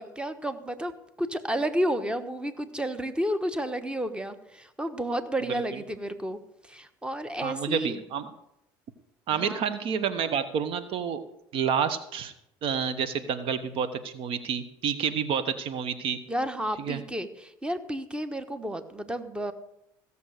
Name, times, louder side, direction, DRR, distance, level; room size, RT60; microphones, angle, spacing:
voice 1, 0.0-7.9 9.3-9.6 16.3-19.5, right 1 dB, 10° right, 10 dB, 1.3 m, -31 dB
voice 2, 7.4-8.3 9.3-11.2 11.5-12.3 12.6-16.2 16.8-17.0, right 7 dB, 60° right, 12 dB, 1.0 m, -29 dB
16.0 x 7.0 x 6.5 m, 0.81 s
hypercardioid pair, 70°, 11 cm